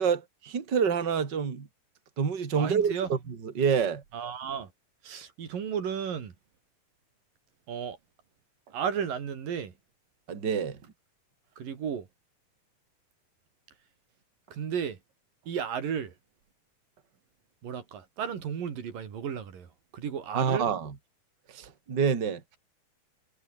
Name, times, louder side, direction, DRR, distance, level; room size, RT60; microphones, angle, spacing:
voice 1, 0.0-1.7 2.2-4.0 10.3-10.8 20.3-20.9 21.5-22.4, right 6 dB, 35° right, 3.0 m, -27 dB
voice 2, 2.6-3.1 4.1-4.7 5.0-6.3 7.7-8.0 8.7-9.7 11.6-12.1 14.5-15.0 15.5-16.1 17.6-20.7, right 7 dB, 90° right, 4.8 m, -34 dB
omnidirectional pair, 3.8 m